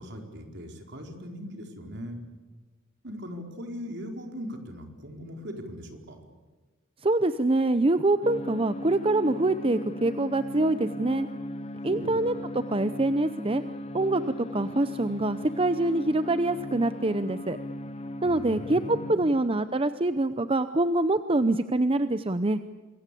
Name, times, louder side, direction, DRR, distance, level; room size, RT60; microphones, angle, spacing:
voice 1, 0.0-2.2 3.0-6.2 11.9-12.2 18.3-19.3, equal, 55° right, 4 dB, 4.5 m, -40 dB
voice 2, 7.0-11.3 11.8-13.6 13.9-17.6 18.2-22.6, right 2 dB, 25° right, 11 dB, 0.7 m, -25 dB
sound 1, 8.2-19.2, left 1 dB, 30° left, 1.2 m, -38 dB
26.5 x 22.5 x 8.5 m, 1.3 s
head